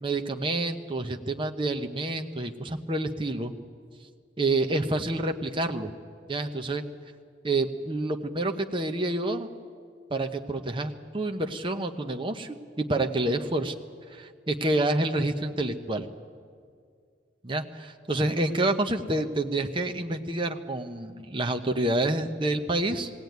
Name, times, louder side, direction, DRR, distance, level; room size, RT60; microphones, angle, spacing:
voice 1, 0.0-3.5 4.4-5.9 6.3-6.8 7.4-9.5 10.1-13.7 14.1-16.1 17.4-17.6 18.1-23.1, right 2 dB, 25° right, 5 dB, 0.9 m, -28 dB
20.5 x 16.5 x 9.4 m, 2.1 s
head